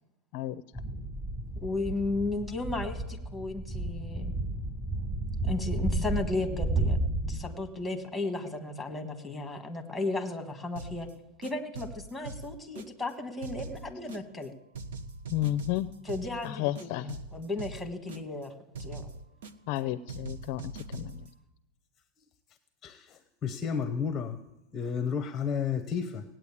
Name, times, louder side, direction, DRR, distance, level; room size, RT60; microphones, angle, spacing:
sound 1, 0.7-7.4, right 2 dB, 15° right, 3.0 m, -32 dB
voice 1, 1.6-4.3 5.4-7.0 7.3-11.1 11.4-14.5 16.0-18.5 18.8-19.1, left 2 dB, ahead, 1.5 m, -34 dB
sound 2, 10.8-11.1 11.4-13.1 13.4-14.5 14.7-16.5 16.8-18.5 18.7-19.8 20.1-21.3, right 3 dB, 80° right, 1.1 m, -42 dB
voice 2, 15.3-15.9 16.4-17.2 19.7-21.3, left 14 dB, 45° left, 0.5 m, -32 dB
voice 3, 22.8-24.4 24.7-26.2, left 6 dB, 20° left, 0.8 m, -32 dB
18.0 x 9.0 x 8.5 m
supercardioid pair, 165°, 0 cm